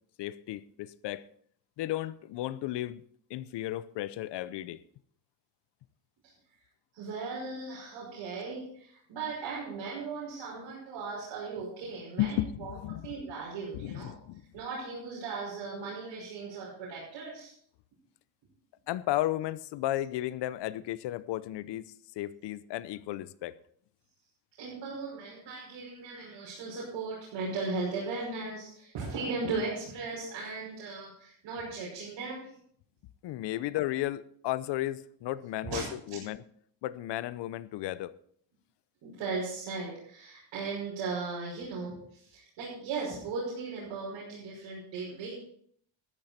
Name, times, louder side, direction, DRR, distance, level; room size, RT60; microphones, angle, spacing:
voice 1, 0.2-1.3 1.8-3.0 3.3-4.8 12.2-13.0 13.7-14.4 18.9-23.6 33.2-36.4 36.8-38.1, left 14 dB, 70° left, 0.8 m, -34 dB
voice 2, 6.9-12.7 13.0-14.1 14.5-17.5 24.6-32.5 35.6-35.8 39.0-45.3, right 4 dB, 80° right, 5.7 m, -37 dB
13.5 x 12.0 x 4.3 m
cardioid pair, 140°, 43 cm